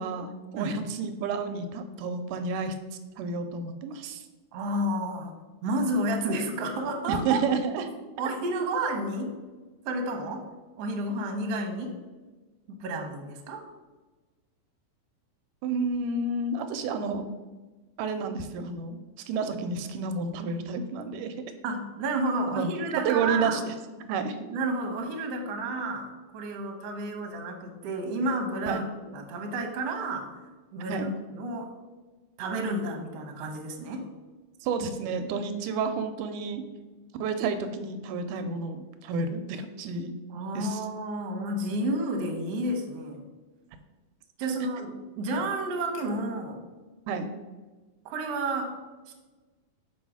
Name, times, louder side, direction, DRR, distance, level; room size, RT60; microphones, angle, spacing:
voice 1, 0.0-2.8 3.2-4.2 7.1-7.9 15.6-17.2 18.0-19.0 19.3-21.3 22.5-22.7 23.1-23.7 24.1-24.5 28.7-28.8 30.9-31.1 34.6-36.6 37.2-40.1 40.5-40.8 47.1-47.3, right 4 dB, 90° right, 8 dB, 2.1 m, -30 dB
voice 2, 4.5-5.3 5.6-7.4 8.2-9.4 9.9-10.4 10.8-12.0 12.7-13.6 21.6-23.6 24.5-30.3 30.7-31.1 31.4-31.7 32.4-34.1 40.3-43.2 44.4-46.6 48.1-48.7 49.1-49.2, right 1 dB, 65° right, 3 dB, 1.8 m, -31 dB
5.5 x 5.4 x 4.8 m, 1.2 s
omnidirectional pair, 3.6 m